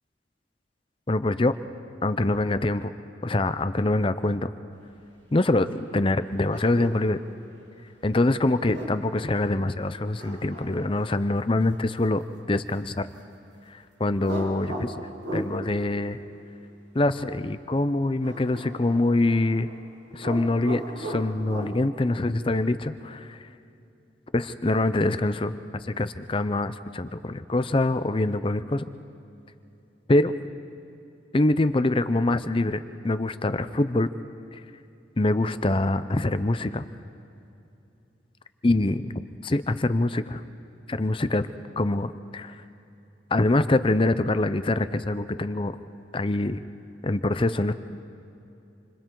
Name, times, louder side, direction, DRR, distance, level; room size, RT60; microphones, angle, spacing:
voice 1, 1.1-1.5 2.0-2.9 3.2-4.5 5.3-5.7 5.9-7.2 8.0-12.2 12.5-13.1 13.7-16.2 16.9-19.7 20.1-23.5 24.3-28.9 30.1-30.3 31.3-34.1 34.5-34.6 35.2-36.8 38.6-40.4 40.9-41.5 41.8-42.6 43.3-45.7 46.1-46.6 47.0-47.7, left 2 dB, 30° left, 12 dB, 0.6 m, -24 dB
sound 1, 6.5-7.1 8.5-9.2 10.2-11.3 14.2-15.6 18.2-19.8 20.1-21.7, right 1 dB, 75° right, 3.2 m, -37 dB
28.5 x 26.0 x 3.9 m, 2.8 s
head